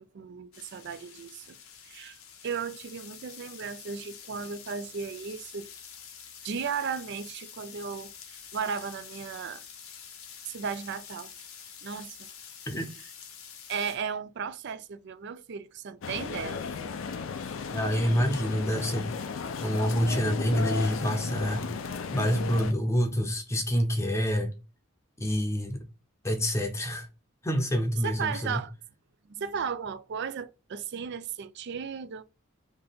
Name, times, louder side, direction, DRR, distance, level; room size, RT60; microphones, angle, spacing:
voice 1, 0.0-1.6 1.8-2.2 2.4-5.7 6.4-9.6 10.4-11.3 11.8-12.3 13.7-16.6 28.0-28.7 29.3-32.2, right 6 dB, 55° right, 0.4 m, -35 dB
sound 1, 0.5-14.0, left 7 dB, 90° left, 0.9 m, -47 dB
sound 2, 16.0-22.7, left 5 dB, 65° left, 0.5 m, -35 dB
voice 2, 17.7-19.1 19.6-21.6 22.1-24.5 25.2-25.8 26.2-27.1 27.4-28.6, equal, 15° left, 0.7 m, -27 dB
4.3 x 2.8 x 3.5 m
head